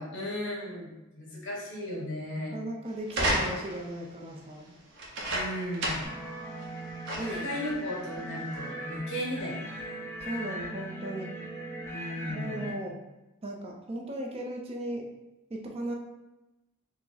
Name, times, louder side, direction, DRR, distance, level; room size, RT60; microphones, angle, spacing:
voice 1, 0.0-2.6 5.3-6.1 7.2-10.0 11.9-12.8, left 1 dB, 55° left, -4 dB, 1.3 m, -36 dB
voice 2, 2.5-4.7 7.2-7.6 10.2-11.3 12.3-13.0 13.4-15.1 15.5-15.9, right 1 dB, 25° right, 0 dB, 0.4 m, -37 dB
sound 1, 3.1-3.9 5.0-6.2 6.6-6.7 7.1-7.5 8.3-8.4, right 1 dB, 55° right, 0.8 m, -31 dB
sound 2, 6.0-12.7, equal, 10° left, 0.7 m, -39 dB
4.5 x 2.1 x 4.0 m, 0.99 s
head